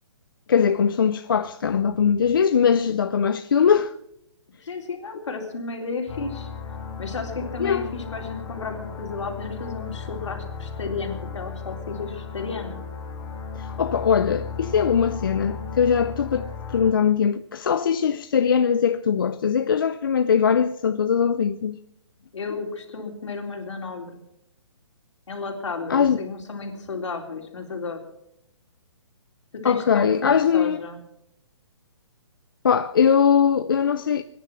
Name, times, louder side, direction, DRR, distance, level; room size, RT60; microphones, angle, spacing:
voice 1, 0.5-3.9 7.6-7.9 13.5-21.8 25.9-26.2 29.6-30.8 32.6-34.2, left 7 dB, 45° left, 0.5 m, -21 dB
voice 2, 4.6-6.5 7.0-12.8 22.3-24.1 25.3-28.0 29.5-31.0, left 4 dB, 70° left, 3.7 m, -33 dB
sound 1, 6.1-16.9, left 5 dB, 10° left, 1.7 m, -35 dB
22.0 x 10.5 x 6.2 m
hypercardioid pair, 175°, 16 cm